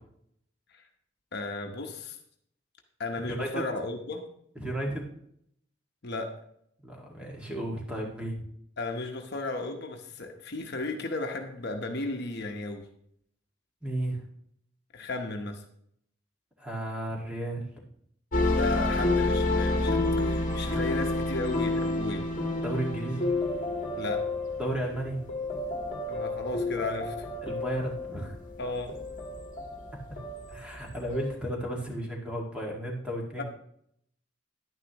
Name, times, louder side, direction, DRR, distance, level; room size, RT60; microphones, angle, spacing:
voice 1, 1.3-2.2 3.0-4.2 6.0-6.3 8.8-12.9 14.9-15.6 18.5-22.3 24.0-24.2 26.1-27.3 28.6-28.9 33.4-33.5, left 2 dB, 55° left, 3 dB, 1.0 m, -34 dB
voice 2, 4.6-5.1 6.8-8.4 13.8-14.2 16.6-17.8 22.6-23.3 24.6-25.2 27.4-28.4 30.5-33.4, right 1 dB, 5° right, -2 dB, 1.9 m, -33 dB
sound 1, 18.3-31.3, left 2 dB, 40° left, 1.5 m, -30 dB
11.0 x 9.8 x 3.0 m, 0.70 s
head